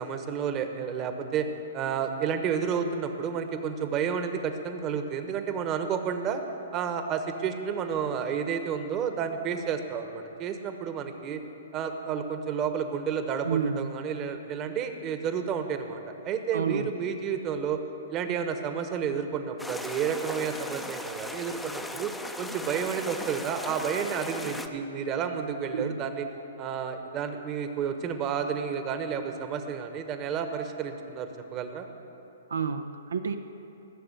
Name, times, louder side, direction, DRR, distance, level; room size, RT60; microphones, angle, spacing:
voice 1, 0.0-1.5 1.7-6.4 6.7-11.4 11.7-17.8 18.1-26.3 26.6-31.8, right 7 dB, 30° right, 7 dB, 1.1 m, -31 dB
voice 2, 13.4-13.9 16.5-16.9 25.7-26.0 32.5-33.3, right 6 dB, 85° right, 8 dB, 0.6 m, -29 dB
sound 1, 19.6-24.7, left 2 dB, 5° left, 0.6 m, -38 dB
15.0 x 6.7 x 8.0 m, 3.0 s
hypercardioid pair, 135°, 0 cm